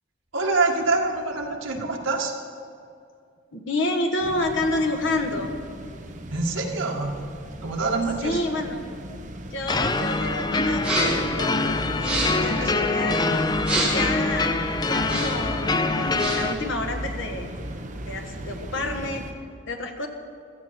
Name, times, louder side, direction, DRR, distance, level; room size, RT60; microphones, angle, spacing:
voice 1, 0.3-2.4 6.3-7.1 7.6-8.4 12.5-12.7, right 3 dB, 75° right, 0 dB, 1.8 m, -25 dB
voice 2, 3.5-5.5 8.2-8.8 9.5-13.3 13.8-17.5 18.1-19.3 19.7-20.1, left 2 dB, 65° left, 4 dB, 1.4 m, -29 dB
sound 1, 4.2-19.3, right 1 dB, 40° right, 1.0 m, -37 dB
sound 2, 9.7-16.5, left 3 dB, 20° left, 0.5 m, -25 dB
sound 3, 10.8-11.3 11.9-12.5 13.6-14.1 14.9-15.5 16.0-16.6, right 1 dB, 5° right, 2.8 m, -28 dB
15.5 x 14.0 x 4.3 m, 2.4 s
head